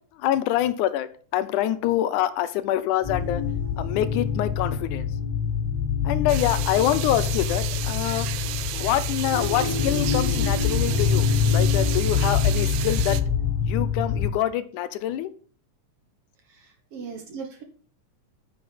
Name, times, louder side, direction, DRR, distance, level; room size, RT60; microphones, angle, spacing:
voice 1, 0.2-3.4 3.8-5.1 6.0-8.3 8.7-13.2 13.7-15.3, left 12 dB, 80° left, 14 dB, 2.1 m, -26 dB
sound 1, 3.0-14.3, left 6 dB, 10° left, 2.4 m, -25 dB
sound 2, 6.3-13.2, right 14 dB, 80° right, 1.6 m, -34 dB
voice 2, 16.5-17.6, right 5 dB, 60° right, 4 dB, 1.8 m, -38 dB
9.2 x 6.0 x 5.5 m, 0.43 s
omnidirectional pair, 3.6 m